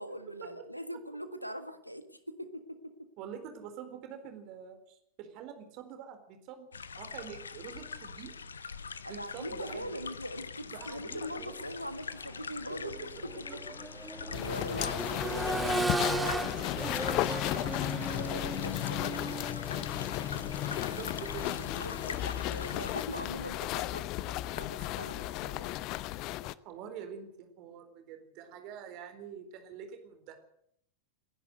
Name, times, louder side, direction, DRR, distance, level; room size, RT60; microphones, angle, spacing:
voice 1, 0.0-3.1 9.0-13.6 14.2-15.8 16.2-16.5 18.2-19.6 20.8-21.1 21.6-25.8, equal, 90° left, 11 dB, 1.7 m, -42 dB
voice 2, 3.2-6.7 7.0-8.3 9.1-10.0 10.7-11.6 12.8-13.1 15.7-16.4 16.8-17.9 20.1-21.6 26.6-30.4, right 8 dB, 40° right, 7 dB, 4.2 m, -46 dB
sound 1, 6.7-23.0, left 5 dB, 70° left, 1.0 m, -44 dB
Accelerating revving vroom, 12.1-12.2 12.7-22.6 24.3-24.4, right 2 dB, 5° right, 1.5 m, -37 dB
sound 2, 14.3-26.5, left 15 dB, 40° left, 0.7 m, -34 dB
29.5 x 11.0 x 8.0 m, 0.70 s
figure-of-eight pair, 90°, 0 cm